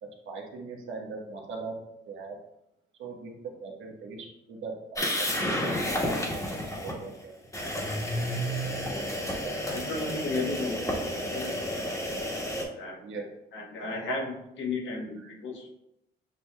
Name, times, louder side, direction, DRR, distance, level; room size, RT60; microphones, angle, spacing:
voice 1, 0.0-1.8 2.1-2.4 3.0-7.3 8.6-9.8 13.0-13.2 15.2-15.3, right 4 dB, 80° right, 0 dB, 1.1 m, -40 dB
sound 1, 5.0-6.9 7.5-12.6, equal, 15° left, 1.3 m, -31 dB
voice 2, 9.5-11.0 11.3-12.1 12.6-13.0 13.5-15.7, left 3 dB, 70° left, -1 dB, 1.2 m, -35 dB
7.6 x 2.8 x 2.2 m, 0.85 s
cardioid pair, 90°, 20 cm